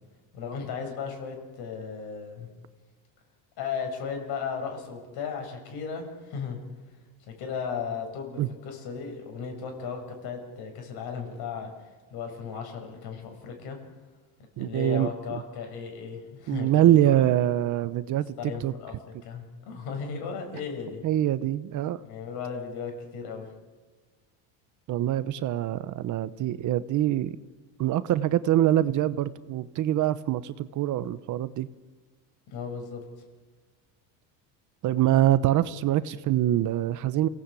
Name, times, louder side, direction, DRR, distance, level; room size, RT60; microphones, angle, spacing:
voice 1, 0.3-2.5 3.6-6.6 7.3-11.7 12.1-13.8 14.6-17.2 18.4-21.0 22.0-23.5 32.5-33.0, left 6 dB, 60° left, 3 dB, 6.7 m, -35 dB
voice 2, 14.6-15.4 16.5-18.7 21.0-22.0 24.9-27.4 27.8-31.7 34.8-37.3, right 13 dB, 45° right, 14 dB, 0.9 m, -24 dB
28.5 x 18.0 x 8.5 m, 1.4 s
cardioid pair, 140°, 43 cm